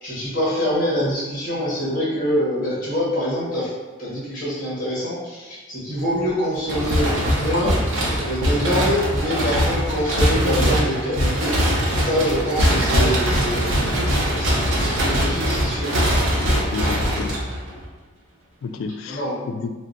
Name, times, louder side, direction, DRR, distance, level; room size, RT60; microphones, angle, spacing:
voice 1, 0.0-3.7 4.0-7.8 8.2-11.5 12.0-15.9 16.4-16.6 19.1-19.4, equal, 45° left, -7 dB, 1.0 m, -25 dB
sound 1, 6.7-17.9, equal, 80° right, 0.7 m, -21 dB
voice 2, 16.6-17.4 18.6-19.7, left 4 dB, 80° left, 6 dB, 0.3 m, -31 dB
2.6 x 2.1 x 3.7 m, 1.2 s
head